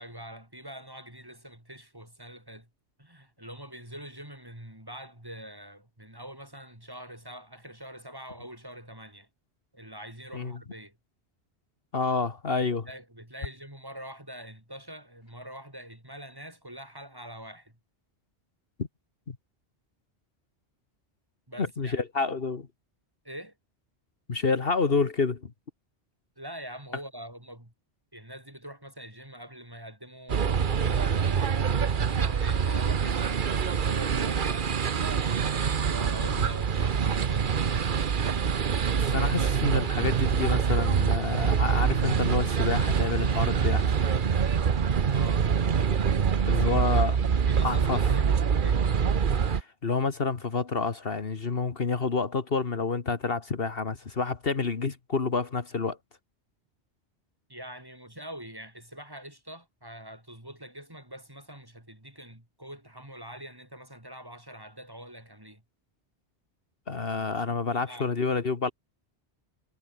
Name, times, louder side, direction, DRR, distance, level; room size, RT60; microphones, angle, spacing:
voice 1, 0.0-2.7 3.0-9.3 9.7-11.0 12.9-17.8 21.5-22.0 23.2-23.5 26.4-27.7 28.1-31.6 32.0-35.1 35.9-38.0 45.1-45.5 46.4-46.8 47.5-48.8 57.5-65.6 67.8-68.1, right 1 dB, 20° right, 4.5 m, -44 dB
voice 2, 11.9-12.9 19.3-19.4 21.6-22.7 24.3-25.5 36.4-36.5 38.9-43.9 46.5-47.2 47.6-48.1 49.5-56.0 66.9-68.7, left 4 dB, 55° left, 1.7 m, -28 dB
sound 1, 30.3-49.6, right 7 dB, 50° right, 1.1 m, -25 dB
omnidirectional pair, 1.1 m